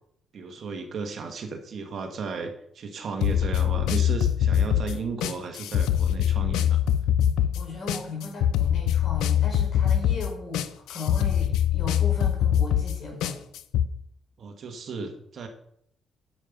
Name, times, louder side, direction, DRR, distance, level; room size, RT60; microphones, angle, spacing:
voice 1, 0.3-6.8 14.4-15.5, right 4 dB, 55° right, 5 dB, 1.7 m, -35 dB
sound 1, 3.2-13.9, left 10 dB, 90° left, 0.5 m, -23 dB
voice 2, 7.5-13.4, left 3 dB, 55° left, 0 dB, 4.9 m, -37 dB
9.7 x 7.6 x 5.4 m, 0.71 s
cardioid pair, 90°, 0 cm